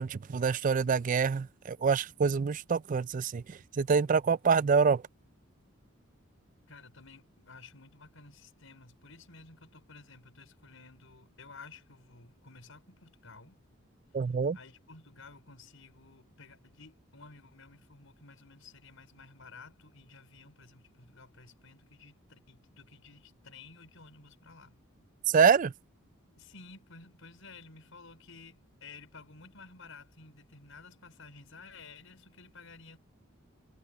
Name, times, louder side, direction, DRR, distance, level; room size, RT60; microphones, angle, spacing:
voice 1, 0.0-5.0 14.1-14.6 25.3-25.7, right 5 dB, 40° right, 0.3 m, -26 dB
voice 2, 6.7-13.6 14.5-24.8 26.3-33.0, left 4 dB, 75° left, 5.4 m, -53 dB
head